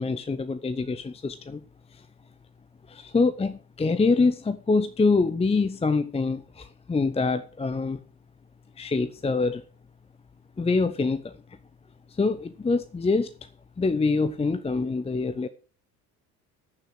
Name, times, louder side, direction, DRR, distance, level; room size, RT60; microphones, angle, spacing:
voice 1, 0.0-1.6 2.9-8.0 8.8-9.6 10.6-11.2 12.2-13.3 13.8-15.5, left 3 dB, 15° left, 0.7 m, -25 dB
14.0 x 6.7 x 6.2 m
figure-of-eight pair, 55°, 45 cm